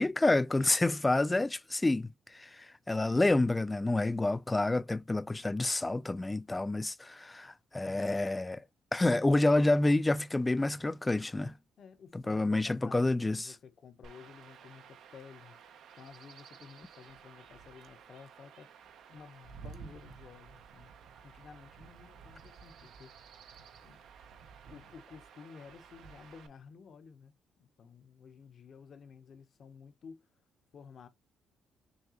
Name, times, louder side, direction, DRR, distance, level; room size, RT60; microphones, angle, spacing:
voice 1, 0.0-8.7 8.9-11.5 12.1-13.5, left 2 dB, 15° left, 0.3 m, -28 dB
voice 2, 7.8-8.2 11.8-15.6 16.0-18.7 19.1-20.9 21.2-23.1 23.8-24.0 24.3-30.3 30.7-31.1, left 6 dB, 55° left, 0.8 m, -53 dB
Chirp tweet / Wind / Stream, 14.0-26.5, right 7 dB, 75° right, 0.7 m, -53 dB
6.4 x 2.3 x 2.8 m
cardioid pair, 90°, 0 cm